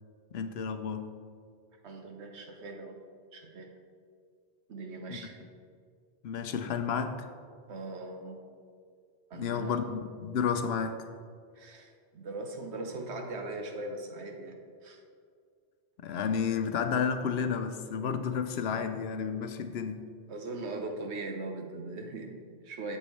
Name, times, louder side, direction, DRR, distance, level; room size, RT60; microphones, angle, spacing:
voice 1, 0.3-1.1 5.1-5.2 6.2-7.3 9.3-11.1 16.0-20.1, left 6 dB, 75° left, 9 dB, 0.8 m, -31 dB
voice 2, 1.8-3.0 3.3-3.7 4.7-5.4 7.7-8.4 9.3-9.8 11.5-15.0 20.3-23.0, right 2 dB, 85° right, 3 dB, 1.3 m, -40 dB
8.3 x 8.2 x 3.2 m, 2.2 s
omnidirectional pair, 1.1 m